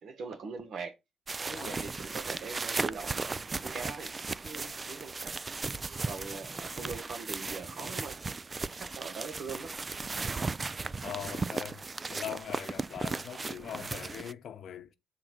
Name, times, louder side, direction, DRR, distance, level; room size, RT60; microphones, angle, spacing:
voice 1, 0.0-0.9 1.4-5.3 5.9-8.2 8.6-9.7, right 5 dB, 65° right, 1.4 m, -42 dB
sound 1, 1.3-14.3, right 4 dB, 30° right, 0.3 m, -36 dB
voice 2, 1.5-2.0 11.0-15.0, left 9 dB, 65° left, 0.8 m, -42 dB
7.6 x 3.7 x 6.0 m
cardioid pair, 90°, 0 cm